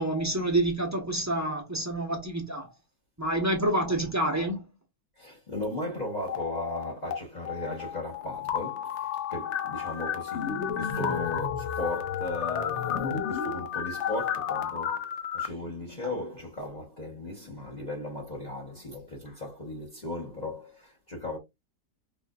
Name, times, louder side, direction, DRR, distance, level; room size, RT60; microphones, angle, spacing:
voice 1, 0.0-2.7 3.2-4.6, right 1 dB, 15° right, 0.7 m, -28 dB
voice 2, 5.2-21.4, left 2 dB, 30° left, 1.0 m, -36 dB
sound 1, 6.2-7.2 7.5-15.5, left 8 dB, 70° left, 0.7 m, -32 dB
5.0 x 2.5 x 2.4 m
omnidirectional pair, 1.8 m